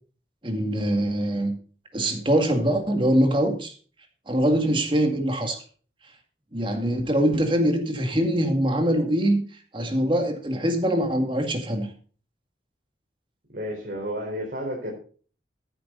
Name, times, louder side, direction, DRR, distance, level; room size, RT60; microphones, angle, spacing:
voice 1, 0.4-1.5 1.9-3.7 4.3-5.6 6.5-9.4 9.7-11.9, right 1 dB, 30° right, 5 dB, 2.2 m, -23 dB
voice 2, 13.5-14.9, equal, 55° right, -3 dB, 4.4 m, -31 dB
15.0 x 9.9 x 4.0 m, 0.41 s
head